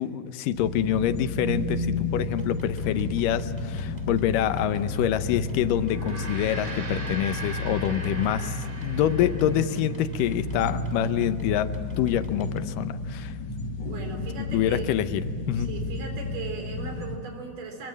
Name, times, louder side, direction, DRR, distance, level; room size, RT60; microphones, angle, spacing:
voice 1, 0.0-11.7 12.0-13.3 14.5-15.2 15.5-15.7, left 11 dB, 85° left, 11 dB, 2.5 m, -26 dB
sound 1, 0.5-17.2, left 2 dB, 35° left, 2.9 m, -32 dB
sound 2, 2.2-12.6, left 2 dB, 15° right, 1.8 m, -42 dB
Gong, 5.8-10.4, right 2 dB, 40° right, 3.3 m, -40 dB
voice 2, 13.8-15.0 15.6-17.9, right 4 dB, 75° right, 4 dB, 5.2 m, -38 dB
24.5 x 22.5 x 7.6 m, 2.2 s
omnidirectional pair, 3.7 m